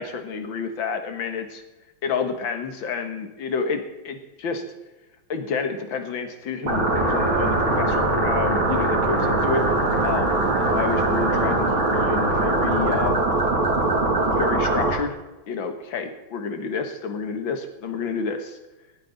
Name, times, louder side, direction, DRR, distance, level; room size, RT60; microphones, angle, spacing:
voice 1, 0.0-1.6 2.0-4.6 5.3-9.7 10.0-11.7 11.9-13.2 14.4-15.1 15.5-18.6, left 5 dB, 70° left, 7 dB, 2.1 m, -29 dB
sound 1, 6.6-14.9, right 2 dB, 75° right, 3.9 m, -21 dB
17.5 x 9.1 x 4.1 m, 1.1 s
omnidirectional pair, 2.2 m